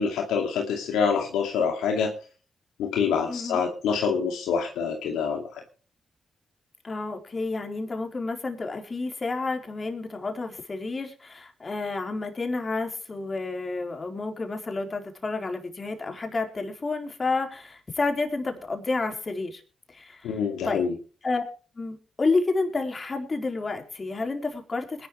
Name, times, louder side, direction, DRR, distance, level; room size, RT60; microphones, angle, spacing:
voice 1, 0.0-2.1 2.8-5.5 20.2-20.9, left 6 dB, 85° left, 2 dB, 2.3 m, -26 dB
voice 2, 3.3-3.6 6.8-19.6 19.9-20.8 21.2-21.4 21.8-25.1, left 3 dB, 40° left, 4 dB, 4.1 m, -30 dB
21.0 x 12.0 x 3.2 m, 0.37 s
supercardioid pair, 45°, 0 cm